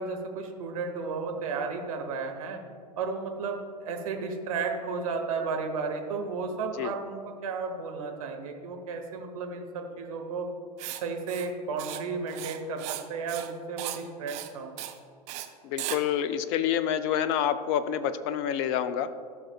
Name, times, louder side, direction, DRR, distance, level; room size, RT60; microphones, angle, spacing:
voice 1, 0.0-2.6 3.0-10.5 11.0-14.7, right 4 dB, 55° right, 3 dB, 1.0 m, -33 dB
Writing, 10.8-11.0 11.3-11.5 11.8-12.0 12.3-13.0 13.3-13.5 13.8-14.0 14.3-14.5 14.8-15.0 15.3-15.5 15.8-16.0, right 13 dB, 35° right, 0.6 m, -36 dB
voice 2, 15.6-19.1, left 9 dB, 35° left, 12 dB, 0.5 m, -27 dB
14.5 x 6.2 x 2.3 m, 2.3 s
figure-of-eight pair, 90°, 21 cm